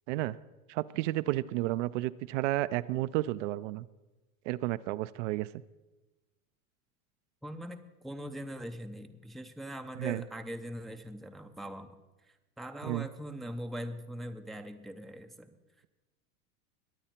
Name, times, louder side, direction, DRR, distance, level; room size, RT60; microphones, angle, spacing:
voice 1, 0.7-3.9 4.5-5.5 10.0-10.2 12.8-13.1, right 17 dB, 55° right, 14 dB, 0.5 m, -32 dB
voice 2, 7.4-12.0 12.2-15.6, equal, ahead, 6 dB, 0.5 m, -41 dB
21.5 x 8.8 x 4.4 m, 1.1 s
hypercardioid pair, 110°, 44 cm